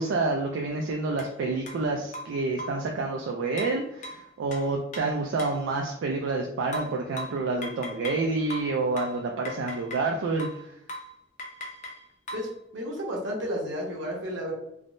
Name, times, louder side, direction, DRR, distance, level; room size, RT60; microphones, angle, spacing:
voice 1, 0.0-10.7, right 3 dB, 90° right, 1 dB, 0.3 m, -28 dB
sound 1, 1.2-1.3 1.7-1.8 2.1-2.9 3.6-5.7 6.7-8.2 8.5-10.1 10.4-10.6 10.9-11.1 11.4-12.5, left 1 dB, 40° left, 0.6 m, -39 dB
voice 2, 12.3-14.5, equal, 70° right, -2 dB, 0.9 m, -32 dB
3.4 x 2.0 x 2.5 m, 0.77 s
head